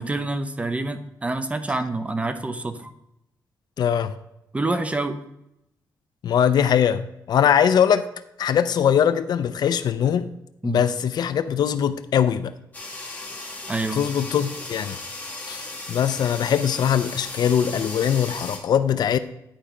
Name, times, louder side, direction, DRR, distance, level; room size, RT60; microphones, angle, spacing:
voice 1, 0.0-2.9 4.5-5.2 10.6-10.8 13.7-14.1, right 2 dB, 15° right, 0.8 m, -27 dB
voice 2, 3.8-4.1 6.2-8.1 8.4-10.3 10.6-12.5 14.0-15.0 15.5-19.2, left 8 dB, 65° left, 0.5 m, -21 dB
sound 1, 12.7-18.6, left 2 dB, 20° left, 2.2 m, -36 dB
10.5 x 5.1 x 4.5 m
cardioid pair, 115°, 8 cm